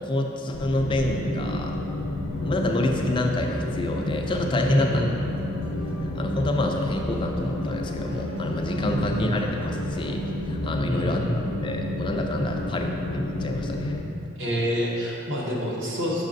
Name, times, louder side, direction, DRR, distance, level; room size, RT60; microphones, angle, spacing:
voice 1, 0.0-1.8 2.4-5.0 5.8-11.3 11.6-14.0, left 1 dB, 25° left, 2 dB, 0.3 m, -28 dB
sound 1, 0.5-14.0, left 1 dB, 90° left, 0.5 m, -30 dB
sound 2, 2.3-10.4, equal, 25° right, 0.8 m, -45 dB
voice 2, 4.7-5.1 9.0-9.4 10.8-11.5 14.4-16.3, equal, 60° right, -4 dB, 0.9 m, -27 dB
6.3 x 5.7 x 2.6 m, 2.8 s
head